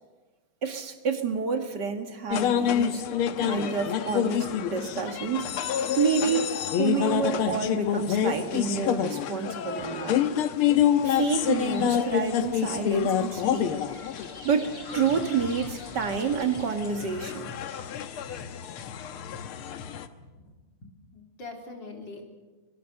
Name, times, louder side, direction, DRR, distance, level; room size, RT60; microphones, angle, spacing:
voice 1, 0.6-3.0 3.4-5.6 6.0-10.3 11.0-13.7 14.4-17.5, right 6 dB, 55° right, 6 dB, 2.3 m, -29 dB
sound 1, 2.3-20.1, left 9 dB, 85° left, 1.9 m, -28 dB
sound 2, 11.1-16.9, left 1 dB, 30° left, 4.9 m, -48 dB
voice 2, 20.2-20.6 20.8-22.3, left 3 dB, 55° left, 2 dB, 4.1 m, -43 dB
25.0 x 22.5 x 6.6 m, 1.2 s
omnidirectional pair, 2.3 m